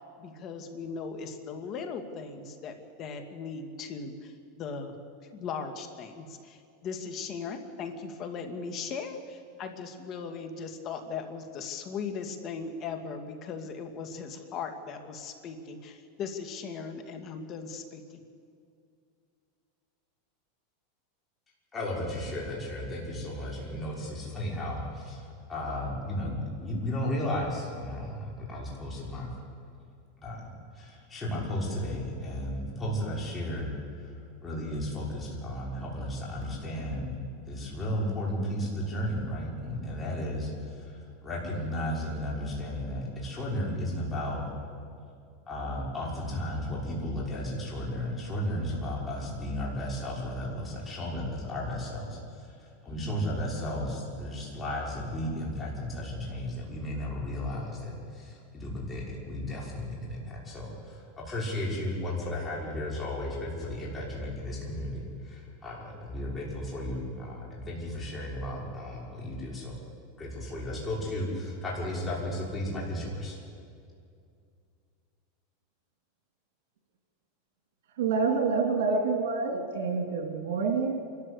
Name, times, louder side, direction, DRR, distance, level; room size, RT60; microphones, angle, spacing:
voice 1, 0.2-5.0 5.3-18.0, left 5 dB, 35° left, 6 dB, 2.1 m, -38 dB
voice 2, 21.7-29.3 30.2-34.1 34.4-40.8 41.2-44.5 45.5-52.5 52.8-69.8 70.2-73.4, left 1 dB, 20° left, -4 dB, 5.8 m, -34 dB
voice 3, 78.0-80.9, right 4 dB, 80° right, 2 dB, 3.2 m, -27 dB
28.0 x 13.0 x 8.4 m, 2.4 s
supercardioid pair, 140°, 0 cm